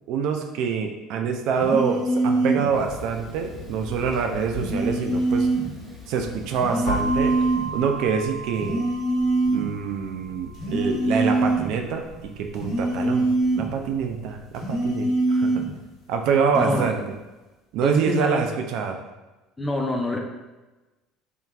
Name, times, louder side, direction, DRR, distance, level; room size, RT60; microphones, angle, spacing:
voice 1, 0.1-5.5 6.1-7.4 7.7-8.9 9.5-13.3 13.6-15.5 16.1-17.0 17.7-19.0, right 6 dB, 65° right, 4 dB, 0.3 m, -26 dB
sound 1, 1.6-2.7 4.6-5.7 6.6-7.7 8.6-9.7 10.5-11.7 12.6-13.7 14.5-15.7 16.5-16.9, right 2 dB, 55° left, 1.2 m, -24 dB
Thunder, 2.7-8.1, left 1 dB, 30° right, 1.3 m, -41 dB
sound 2, 6.9-14.7, right 3 dB, 75° left, 1.4 m, -35 dB
voice 2, 16.5-16.9 17.8-18.4 19.6-20.2, left 1 dB, 15° left, 1 dB, 0.6 m, -25 dB
3.6 x 2.7 x 2.3 m, 1.1 s
hypercardioid pair, 65°, 0 cm